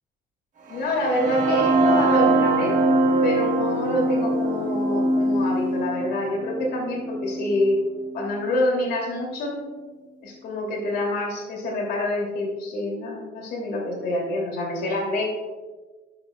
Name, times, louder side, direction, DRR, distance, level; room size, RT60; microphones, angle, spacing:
voice 1, 0.7-2.7 3.2-7.8 8.1-9.6 10.2-15.3, left 1 dB, 70° left, -1 dB, 2.7 m, -27 dB
sound 1, 0.7-8.6, right 2 dB, 50° right, 1.3 m, -23 dB
11.5 x 7.2 x 2.3 m, 1.3 s
cardioid pair, 110°, 17 cm